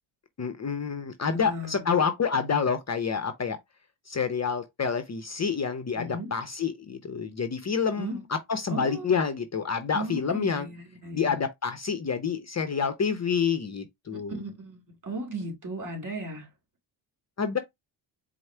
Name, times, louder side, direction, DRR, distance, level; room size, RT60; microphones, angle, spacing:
voice 1, 0.4-3.6 4.1-10.7 11.1-14.4 17.4-17.6, left 6 dB, 35° left, 0.7 m, -28 dB
voice 2, 1.3-1.9 6.0-6.3 8.0-8.2 8.7-9.1 9.9-11.4 14.1-16.5, right 1 dB, 40° right, 2.1 m, -36 dB
4.6 x 2.1 x 4.3 m
cardioid pair, 85°, 49 cm